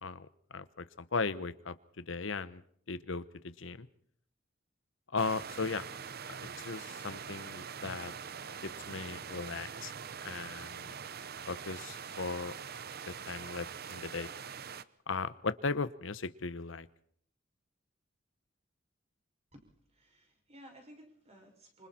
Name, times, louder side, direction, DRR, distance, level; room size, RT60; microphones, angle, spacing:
voice 1, 0.0-2.6 2.9-3.9 5.1-5.8 6.6-8.1 8.6-9.9 10.2-10.9 11.5-12.5 13.0-14.3 15.1-16.9, left 4 dB, 75° left, 14 dB, 1.0 m, -37 dB
sound 1, 5.2-14.8, right 7 dB, 55° right, 0.8 m, -44 dB
voice 2, 19.9-21.9, equal, 35° right, 3 dB, 6.2 m, -56 dB
26.5 x 25.5 x 4.4 m, 0.63 s
head